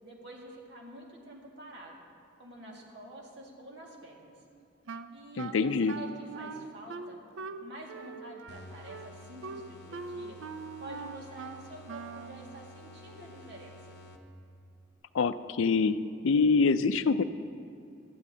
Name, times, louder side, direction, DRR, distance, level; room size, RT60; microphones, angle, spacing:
voice 1, 0.0-2.0 2.4-4.4 5.1-7.2 7.6-10.4 10.8-13.8, right 1 dB, 60° right, -2 dB, 2.0 m, -48 dB
Wind instrument woodwind instrument, 4.9-12.4, right 4 dB, 85° right, 0.5 m, -42 dB
voice 2, 5.4-5.9 15.1-16.0 16.2-17.2, left 4 dB, 85° left, 13 dB, 0.4 m, -25 dB
sound 1, 8.5-14.6, left 1 dB, 55° left, 0.8 m, -51 dB
18.0 x 12.5 x 2.8 m, 2.4 s
head